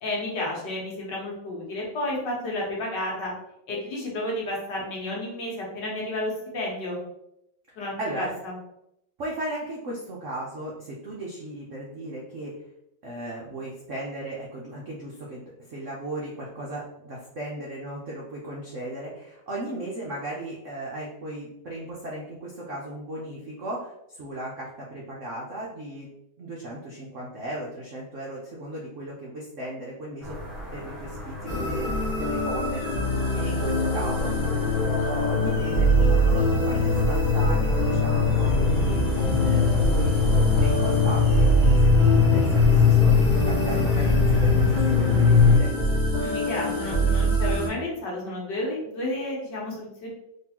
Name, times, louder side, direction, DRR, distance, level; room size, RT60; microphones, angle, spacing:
voice 1, 0.0-3.3 3.7-7.0 7.8-8.6 46.2-50.1, left 1 dB, 65° left, -3 dB, 1.7 m, -31 dB
voice 2, 8.0-8.3 9.2-12.5 13.0-26.1 26.4-30.4 30.7-46.0, right 1 dB, 65° right, -4 dB, 0.7 m, -36 dB
sound 1, 30.2-45.6, left 6 dB, ahead, 0.8 m, -23 dB
sound 2, 31.5-47.7, right 1 dB, 30° left, 1.1 m, -24 dB
3.8 x 3.2 x 2.9 m, 0.81 s
omnidirectional pair, 2.2 m